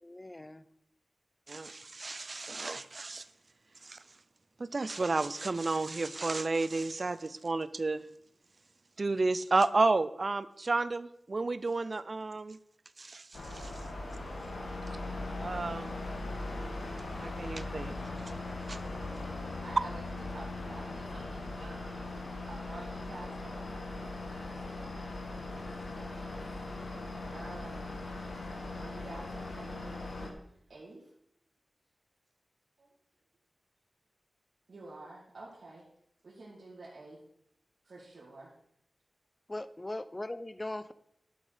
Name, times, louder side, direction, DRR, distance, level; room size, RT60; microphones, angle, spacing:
voice 1, 0.0-0.6 39.5-40.9, left 1 dB, 25° left, 14 dB, 0.5 m, -39 dB
voice 2, 1.5-3.2 3.9-4.0 4.6-8.0 9.0-12.6 13.0-13.2 15.4-16.0 17.2-17.9 18.7-18.8, right 3 dB, 50° right, 15 dB, 0.5 m, -31 dB
sound 1, 13.3-30.3, left 2 dB, 85° left, 1.9 m, -39 dB
voice 3, 19.6-26.4 26.8-26.9 27.3-28.0 28.8-30.4 30.7-31.1 32.8-32.9 34.7-35.8 36.2-37.2 37.8-38.5, right 2 dB, 80° right, -8 dB, 2.5 m, -50 dB
11.5 x 6.2 x 5.0 m, 0.73 s
wide cardioid pair, 85°, 0 cm